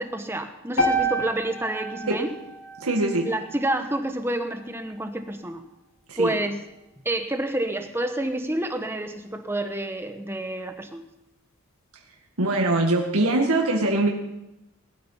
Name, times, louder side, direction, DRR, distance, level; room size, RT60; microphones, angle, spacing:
voice 1, 0.0-2.3 3.2-5.6 6.2-6.6 7.0-11.0, right 1 dB, 10° right, 7 dB, 1.2 m, -28 dB
sound 1, 0.8-4.9, right 1 dB, 70° left, 2.5 m, -30 dB
voice 2, 2.8-3.3 6.1-6.4 12.4-14.1, right 2 dB, 85° right, 0 dB, 2.0 m, -22 dB
19.0 x 13.0 x 5.7 m, 0.92 s
head